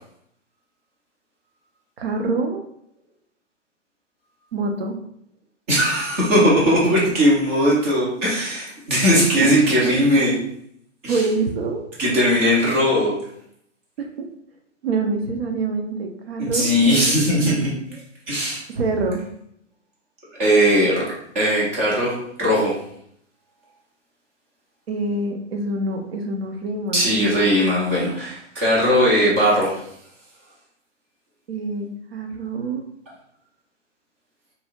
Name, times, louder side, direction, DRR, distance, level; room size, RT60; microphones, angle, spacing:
voice 1, 2.0-2.6 4.5-5.0 11.1-11.8 14.0-14.3 14.8-16.7 18.7-19.2 24.9-27.1 31.5-32.8, right 3 dB, 55° right, 3 dB, 0.6 m, -25 dB
voice 2, 5.7-10.4 11.0-11.2 12.0-13.1 16.4-17.7 18.3-18.6 20.4-21.0 21.3-22.7 26.9-29.7, equal, 10° right, -6 dB, 0.4 m, -19 dB
2.7 x 2.3 x 2.8 m, 0.71 s
figure-of-eight pair, 120°, 36 cm